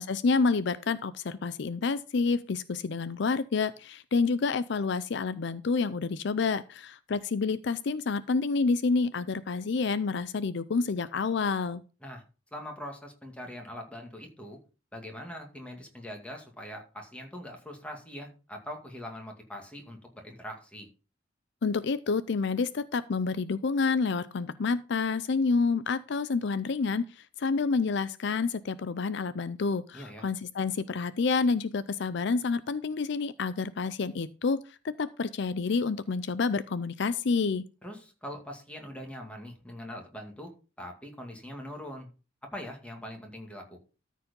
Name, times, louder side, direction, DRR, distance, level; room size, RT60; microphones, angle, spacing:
voice 1, 0.0-11.8 21.6-37.6, left 4 dB, 60° left, 15 dB, 0.5 m, -28 dB
voice 2, 12.5-14.6 14.9-20.9 29.9-30.2 37.8-40.5 40.8-42.1 42.5-43.8, equal, 5° left, 2 dB, 2.3 m, -42 dB
13.5 x 4.7 x 5.3 m, 0.34 s
head